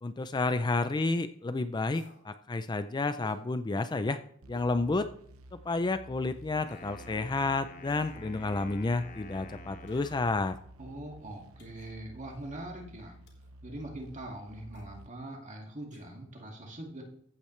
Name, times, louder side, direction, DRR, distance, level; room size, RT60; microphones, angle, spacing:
voice 1, 0.0-4.2 4.5-5.1 5.5-10.6, left 3 dB, 20° left, 11 dB, 0.4 m, -30 dB
sound 1, 1.9-2.3 3.2-3.4 4.5-4.8 5.2-5.3 6.6-7.0 7.9-8.2 9.9-10.4 11.6-12.0 13.3-13.5 14.7-14.9 15.9-16.1 16.3-16.4, left 2 dB, 55° left, 3.1 m, -56 dB
sound 2, 4.4-15.1, right 1 dB, 75° right, 0.9 m, -51 dB
Wind instrument woodwind instrument, 6.6-10.5, left 2 dB, 35° left, 1.1 m, -50 dB
voice 2, 10.8-13.2 13.6-17.0, right 1 dB, 35° right, 1 dB, 2.1 m, -42 dB
14.5 x 8.6 x 3.2 m, 0.66 s
head